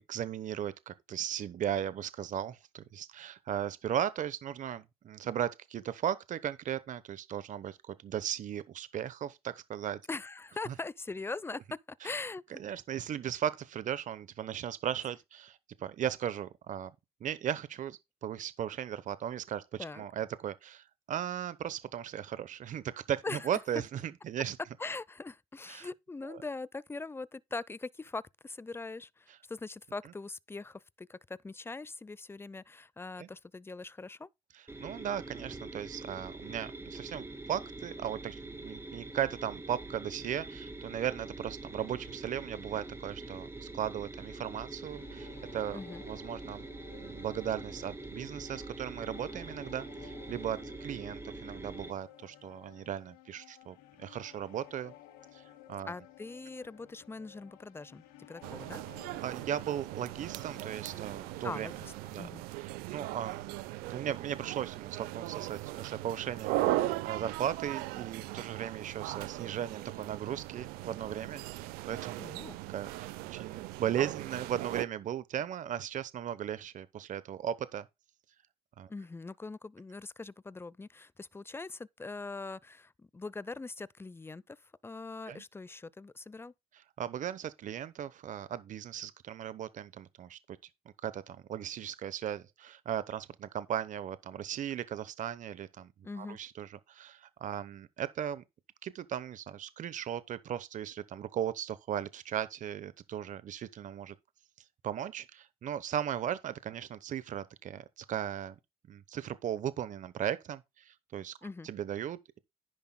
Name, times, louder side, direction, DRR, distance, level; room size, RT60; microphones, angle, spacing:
voice 1, 0.0-10.0 10.7-10.8 12.0-12.1 12.6-16.9 17.2-24.6 25.7-25.9 26.3-26.4 29.3-29.4 33.2-33.3 34.5-45.8 46.1-46.6 47.0-54.9 55.3-55.9 59.2-61.7 62.1-62.3 62.6-63.6 63.9-72.3 72.7-77.9 78.8-78.9 85.2-85.4 87.0-90.6 91.0-95.9 96.2-98.4 98.8-104.1 104.8-108.6 108.9-111.3 111.6-112.4, right 10 dB, 55° right, 0.9 m, -37 dB
voice 2, 10.1-12.4 19.8-20.0 23.2-23.5 24.8-34.3 45.7-46.0 55.8-58.8 61.4-62.4 72.2-72.6 78.9-86.5 96.0-96.4 111.4-111.7, left 3 dB, 15° left, 0.6 m, -42 dB
sound 1, 34.7-51.9, right 2 dB, 15° right, 2.4 m, -44 dB
sound 2, 44.6-62.3, left 12 dB, 85° left, 1.8 m, -56 dB
sound 3, 58.4-74.9, right 17 dB, 85° right, 0.5 m, -38 dB
10.5 x 10.5 x 2.2 m
supercardioid pair, 60°, 15 cm